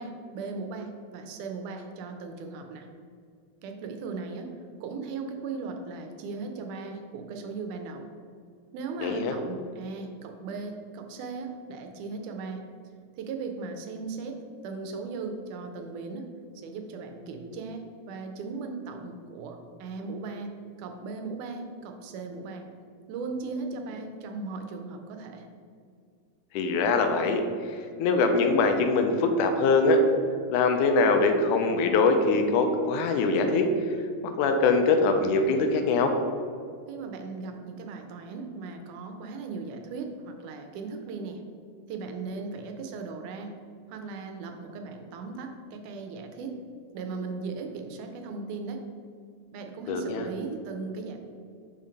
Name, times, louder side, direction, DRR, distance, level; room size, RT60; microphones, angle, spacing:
voice 1, 0.0-2.9 3.6-4.5 4.8-8.1 8.7-12.6 13.2-16.3 16.6-22.6 23.1-25.5 36.9-41.4 41.9-43.5 43.9-46.6 46.9-48.8 49.5-51.2, right 4 dB, 85° right, 5 dB, 2.1 m, -37 dB
voice 2, 9.0-9.3 26.5-30.0 30.5-34.0 34.2-36.1 49.9-50.2, left 3 dB, 85° left, 5 dB, 2.1 m, -23 dB
5.5 x 4.4 x 5.0 m, 2.3 s
omnidirectional pair, 3.6 m